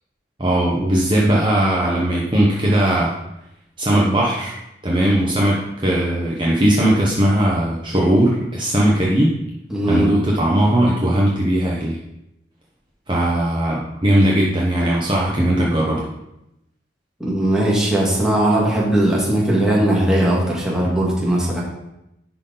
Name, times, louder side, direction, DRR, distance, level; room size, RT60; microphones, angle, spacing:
voice 1, 0.4-3.1 3.8-9.4 9.9-12.0 13.1-16.1, right 1 dB, 25° right, -4 dB, 1.0 m, -18 dB
voice 2, 9.7-10.1 17.2-21.6, right 1 dB, 5° right, -6 dB, 1.9 m, -18 dB
10.5 x 3.9 x 4.0 m, 0.87 s
head